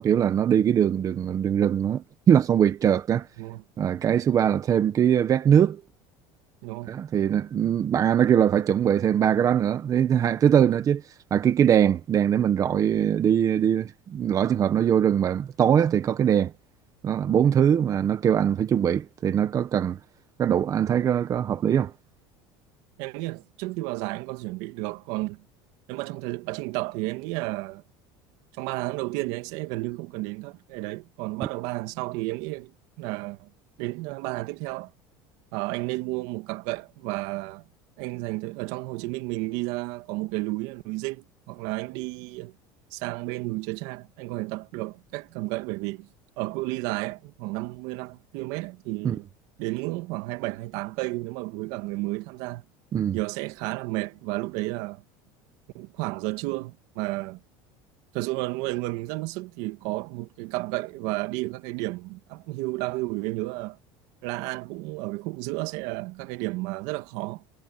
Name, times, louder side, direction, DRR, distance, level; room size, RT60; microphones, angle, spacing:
voice 1, 0.0-3.3 3.8-5.8 6.9-11.0 11.3-16.5 17.0-20.0 20.4-21.9 49.0-49.2 52.9-53.2, right 9 dB, 30° right, 1.3 m, -22 dB
voice 2, 23.0-25.4 25.9-27.8 28.5-32.7 33.0-33.5 33.8-34.9 35.5-37.7 38.0-42.5 42.9-46.1 46.4-49.3 49.6-52.6 53.1-55.0 55.7-57.4 58.1-63.8 64.2-67.4, right 21 dB, 70° right, 2.2 m, -32 dB
cardioid pair, 135°, 11 cm